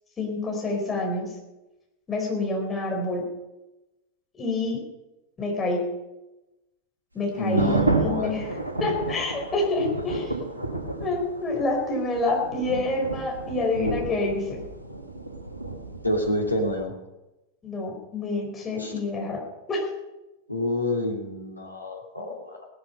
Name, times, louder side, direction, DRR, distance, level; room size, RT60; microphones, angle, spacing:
voice 1, 0.2-1.3 2.1-3.3 4.4-4.8 5.4-5.9 7.1-8.5 8.8-10.3 11.0-14.6 17.6-19.4 19.7-19.9, left 2 dB, 20° left, 1 dB, 4.6 m, -27 dB
sound 1, 7.3-16.8, right 2 dB, 85° right, 1.8 m, -31 dB
voice 2, 7.4-8.3 16.0-16.9 18.8-18.9 20.5-22.6, equal, 85° left, 0 dB, 2.8 m, -28 dB
17.5 x 12.0 x 5.6 m, 1.0 s
figure-of-eight pair, 90°, 0 cm